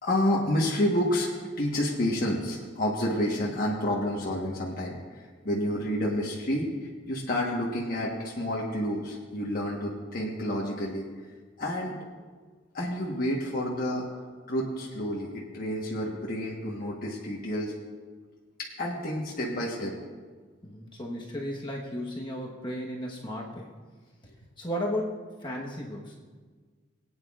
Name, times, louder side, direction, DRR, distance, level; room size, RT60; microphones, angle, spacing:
voice 1, 0.0-1.3 1.6-11.0 11.6-12.0 12.7-14.2 14.5-17.7 18.6-19.9, left 1 dB, 50° left, -4 dB, 1.3 m, -29 dB
voice 2, 20.6-23.7 24.6-26.2, equal, 25° left, -2 dB, 1.2 m, -34 dB
21.0 x 9.0 x 2.4 m, 1.5 s
head